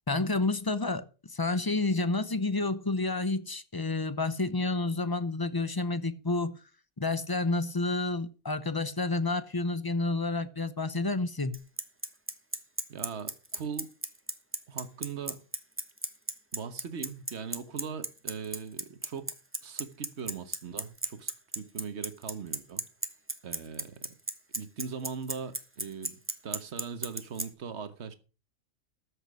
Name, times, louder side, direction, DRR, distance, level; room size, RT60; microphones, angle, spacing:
voice 1, 0.1-6.6 7.0-11.6, left 2 dB, 25° left, 0.5 m, -30 dB
Bicycle, 11.5-27.4, right 1 dB, 10° right, 1.0 m, -33 dB
voice 2, 12.9-13.9 14.7-15.4 16.5-19.3 19.6-22.8 23.4-24.0 24.5-28.1, right 6 dB, 55° right, 1.4 m, -40 dB
13.5 x 6.6 x 6.2 m
omnidirectional pair, 1.4 m